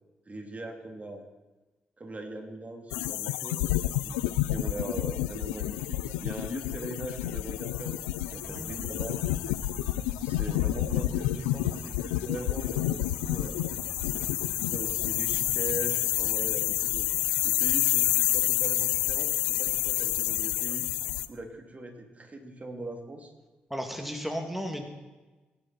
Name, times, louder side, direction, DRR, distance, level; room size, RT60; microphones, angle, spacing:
voice 1, 0.3-1.3 2.0-9.2 10.2-13.6 14.1-17.1 17.4-20.9 21.3-23.3, right 2 dB, 30° right, 3 dB, 3.2 m, -41 dB
sound 1, 2.9-21.3, left 16 dB, 90° left, 0.6 m, -29 dB
voice 2, 8.3-8.7 23.7-24.8, equal, 5° right, 3 dB, 2.7 m, -34 dB
sound 2, 8.3-17.8, right 3 dB, 60° right, 2.8 m, -47 dB
22.5 x 11.5 x 4.5 m, 1.2 s
hypercardioid pair, 40°, 5 cm